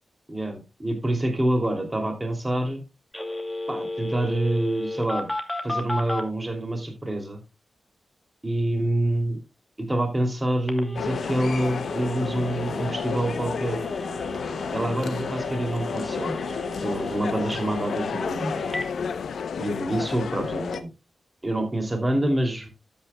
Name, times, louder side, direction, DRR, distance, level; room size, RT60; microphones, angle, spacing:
voice 1, 0.3-2.8 3.7-5.3 5.6-7.4 8.4-9.4 9.8-13.8 14.7-18.6 19.6-20.9 21.4-22.7, right 1 dB, 25° right, 4 dB, 2.9 m, -27 dB
Telephone, 3.1-6.2 10.7-18.9, equal, 10° left, 2.4 m, -35 dB
sound 1, 11.0-20.8, left 6 dB, 75° left, 0.7 m, -31 dB
12.0 x 9.5 x 2.3 m, 0.26 s
cardioid pair, 50°, 0 cm